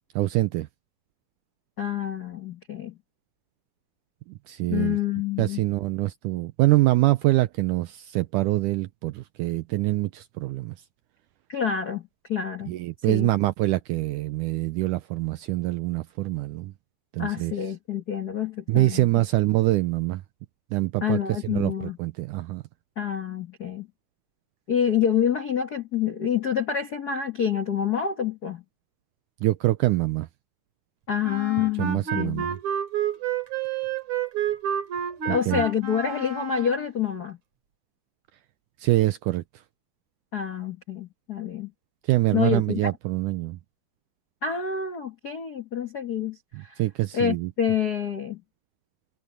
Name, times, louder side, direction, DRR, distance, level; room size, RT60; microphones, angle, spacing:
voice 1, 0.2-0.7 4.3-5.0 5.4-10.8 12.7-16.7 17.1-17.5 18.7-20.2 20.7-21.2 21.5-22.6 29.4-30.3 31.8-32.6 35.3-35.7 38.8-39.4 42.0-43.6 46.5-47.5, right 17 dB, 80° right, 1.8 m, -25 dB
voice 2, 1.8-2.9 4.7-5.6 11.5-12.0 12.3-12.7 13.1-13.3 17.2-19.1 21.0-22.0 23.0-23.9 24.7-28.6 31.1-32.5 35.3-37.4 40.3-41.7 42.3-42.9 44.4-46.8 47.1-48.4, left 8 dB, 70° left, 0.9 m, -27 dB
Wind instrument woodwind instrument, 31.2-36.9, right 7 dB, 55° right, 4.1 m, -30 dB
omnidirectional pair, 4.2 m